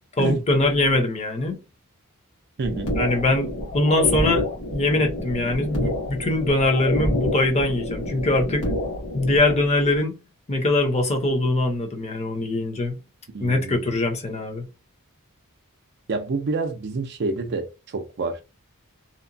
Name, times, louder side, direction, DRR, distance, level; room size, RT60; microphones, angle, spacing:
voice 1, 0.2-1.6 3.0-3.5 3.7-4.4 4.7-8.6 9.1-10.2 10.5-12.9 13.4-14.6, left 2 dB, 30° left, 0.7 m, -22 dB
sound 1, 2.6-9.6, left 1 dB, 85° left, 1.3 m, -28 dB
voice 2, 2.6-2.9 13.3-13.9 16.1-18.4, right 3 dB, 50° right, 0.5 m, -28 dB
2.8 x 2.1 x 2.6 m
head